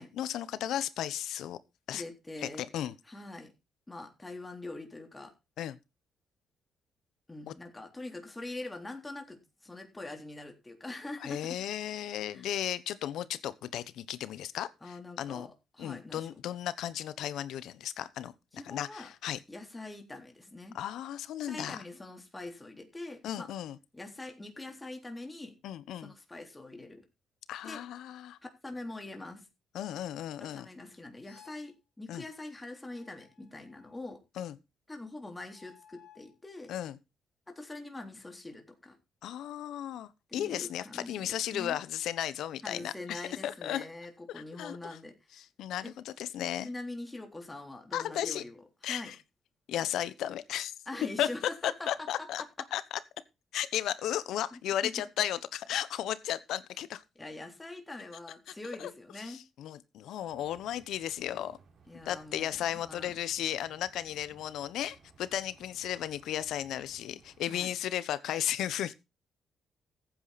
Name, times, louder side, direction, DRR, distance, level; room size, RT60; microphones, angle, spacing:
voice 1, 0.0-1.6 1.9-2.0 2.6-2.9 5.6-5.8 11.2-15.5 15.8-18.3 18.7-19.4 20.7-21.8 23.2-23.8 25.6-26.1 27.5-28.4 29.7-30.7 32.1-32.2 34.4-34.5 36.7-37.0 39.2-43.8 44.6-45.0 45.4-46.7 47.9-48.4 48.8-49.2 49.7-50.7 51.2-51.3 51.6-52.4 52.7-53.0 53.5-57.0 58.8-58.9 59.3-61.6 62.0-68.9, left 11 dB, 80° left, 1.1 m, -35 dB
voice 2, 1.9-2.7 3.1-3.5 3.9-5.3 7.3-11.6 12.3-12.5 14.8-16.3 18.5-19.1 19.5-20.7 21.4-23.5 23.9-25.6 26.0-27.1 27.6-27.8 28.4-29.5 30.4-34.2 34.9-36.7 37.5-39.0 40.3-41.8 42.6-45.4 45.8-45.9 46.6-49.1 50.9-51.9 54.5-54.9 57.2-59.4 61.9-63.1 67.5-67.7, left 2 dB, 15° left, 3.7 m, -44 dB
sound 1, 31.2-31.7 32.9-34.1 35.5-36.3, left 9 dB, 60° left, 3.8 m, -59 dB
sound 2, 60.3-67.5, right 5 dB, 55° right, 3.7 m, -61 dB
14.5 x 9.1 x 4.2 m
cardioid pair, 90°, 0 cm